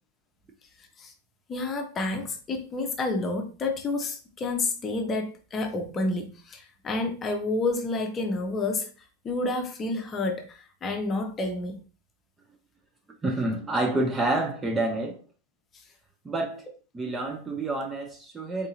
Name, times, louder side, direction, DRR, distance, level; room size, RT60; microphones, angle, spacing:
voice 1, 1.5-8.9 9.2-11.8, left 2 dB, 25° left, 0.8 m, -29 dB
voice 2, 13.2-15.2 16.2-16.7 16.9-18.7, right 2 dB, 15° right, 0.6 m, -28 dB
4.1 x 3.7 x 2.5 m
figure-of-eight pair, 90°, 0 cm